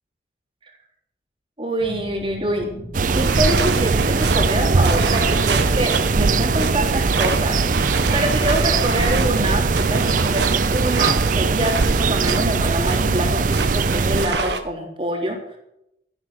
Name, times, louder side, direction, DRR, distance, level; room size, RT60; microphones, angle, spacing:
voice 1, 1.6-2.7 3.1-15.6, right 1 dB, 30° right, 1 dB, 3.6 m, -25 dB
sound 1, 1.8-10.9, equal, 75° left, 2.8 m, -37 dB
sound 2, 2.9-14.3, right 4 dB, 45° right, 0.5 m, -20 dB
sound 3, 3.1-14.6, right 4 dB, 70° right, 1.6 m, -28 dB
14.0 x 11.5 x 6.4 m, 0.80 s
head